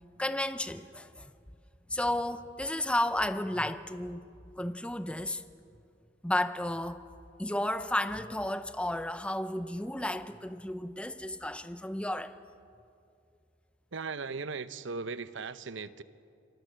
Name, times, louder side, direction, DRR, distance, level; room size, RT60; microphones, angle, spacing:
voice 1, 0.2-1.3 1.9-4.2 4.6-5.4 6.2-7.0 7.4-12.4, left 1 dB, 5° left, 0.7 m, -32 dB
voice 2, 13.9-16.0, right 4 dB, 70° right, 0.8 m, -38 dB
27.0 x 21.5 x 7.5 m
head